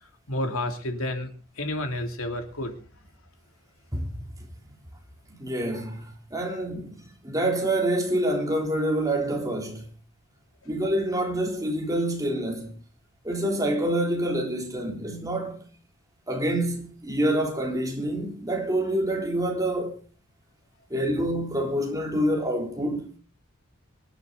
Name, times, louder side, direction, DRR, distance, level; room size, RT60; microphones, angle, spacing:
voice 1, 0.0-3.1 10.6-10.7, left 1 dB, 70° left, 3.1 m, -31 dB
voice 2, 5.4-9.9 10.7-12.8 13.2-15.7 16.3-20.0 20.9-23.1, right 1 dB, 15° right, 3.4 m, -27 dB
25.0 x 9.7 x 4.0 m
head